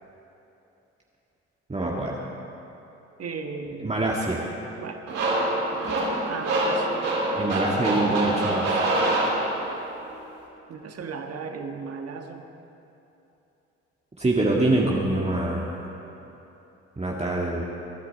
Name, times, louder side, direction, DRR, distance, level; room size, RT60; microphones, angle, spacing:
voice 1, 1.7-2.2 3.8-4.4 7.3-8.8 14.2-15.8 17.0-17.6, right 2 dB, 20° right, -3 dB, 1.9 m, -25 dB
voice 2, 3.2-4.0 4.8-5.0 6.3-7.0 7.4-7.7 10.7-12.5, right 5 dB, 50° right, 5 dB, 1.6 m, -36 dB
sound 1, 5.1-9.9, right 1 dB, 75° right, 3.8 m, -25 dB
23.5 x 9.9 x 4.3 m, 3.0 s
hypercardioid pair, 50°, 32 cm